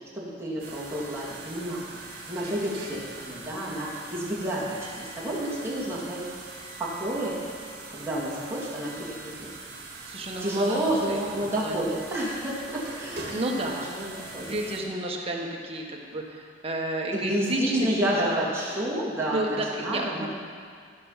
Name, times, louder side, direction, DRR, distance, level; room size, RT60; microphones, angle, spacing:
voice 1, 0.1-6.2 6.8-7.4 7.9-9.5 10.4-13.4 13.8-14.5 17.1-20.3, right 1 dB, 15° right, -8 dB, 2.6 m, -30 dB
sound 1, 0.6-14.8, right 3 dB, 60° right, 2.1 m, -42 dB
voice 2, 10.1-10.8 11.1-11.2 11.6-11.8 13.3-13.9 14.5-18.4 19.3-20.3, right 1 dB, 35° right, -1 dB, 1.4 m, -30 dB
15.0 x 6.1 x 5.8 m, 2.1 s
head